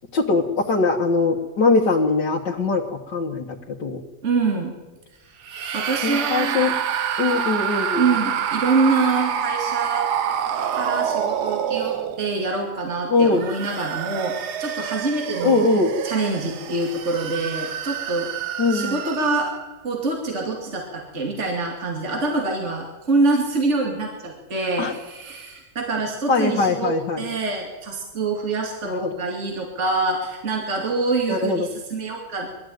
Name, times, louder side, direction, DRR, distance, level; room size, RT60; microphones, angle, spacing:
voice 1, 0.1-4.0 6.0-6.7 7.2-8.0 13.1-13.4 15.4-15.9 18.6-19.0 24.8-24.9 26.3-27.3 28.8-29.2 31.3-31.7, left 3 dB, 75° left, -2 dB, 2.1 m, -21 dB
voice 2, 4.2-4.7 5.7-6.7 8.0-10.1 10.7-15.7 16.0-18.3 18.7-19.5 19.8-32.5, right 3 dB, 40° right, 1 dB, 2.8 m, -25 dB
sound 1, 5.4-12.5 13.2-19.7, right 8 dB, 65° right, 1.4 m, -27 dB
21.5 x 13.5 x 9.3 m, 1.2 s
omnidirectional pair, 1.9 m